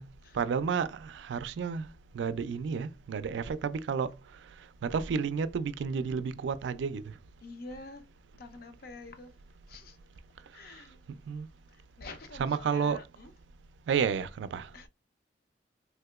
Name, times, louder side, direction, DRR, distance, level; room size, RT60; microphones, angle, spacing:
voice 1, 0.3-1.9 2.1-4.1 4.8-7.0 11.3-11.5 12.4-13.0 13.9-14.7, right 6 dB, 80° right, 0.3 m, -31 dB
voice 2, 7.4-8.0 8.4-9.3 9.7-10.0 10.5-11.0 12.0-13.3 14.7-14.9, left 3 dB, 55° left, 0.6 m, -46 dB
3.5 x 2.8 x 2.3 m
head